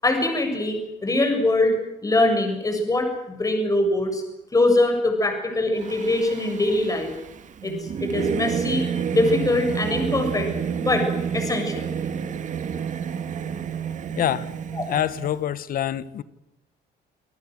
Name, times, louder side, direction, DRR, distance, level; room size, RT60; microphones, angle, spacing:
voice 1, 0.0-4.2 4.5-7.1 7.6-10.5 10.8-11.1 11.3-11.9, left 2 dB, 20° left, 5 dB, 7.3 m, -23 dB
Singing / Musical instrument, 5.8-15.3, right 7 dB, 45° right, 2.2 m, -29 dB
voice 2, 14.2-14.5 14.8-16.2, left 10 dB, 60° left, 16 dB, 1.4 m, -25 dB
28.5 x 19.0 x 7.9 m, 0.88 s
cardioid pair, 110°, 17 cm